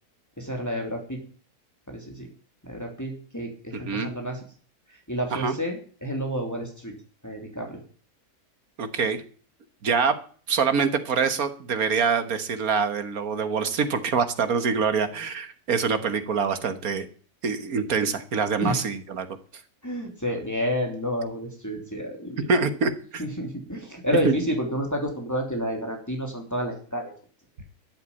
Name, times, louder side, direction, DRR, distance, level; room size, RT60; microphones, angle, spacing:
voice 1, 0.4-1.2 1.9-2.3 2.6-4.4 5.1-6.9 7.2-7.8 18.6-18.9 19.8-22.5 23.2-27.1, equal, 10° left, 1 dB, 3.0 m, -30 dB
voice 2, 3.7-4.1 5.3-5.5 8.8-9.2 9.8-10.2 10.5-17.1 17.4-19.3 22.5-23.2 24.3-24.4, right 5 dB, 70° right, 9 dB, 1.8 m, -25 dB
13.0 x 8.2 x 8.5 m, 0.43 s
omnidirectional pair, 1.6 m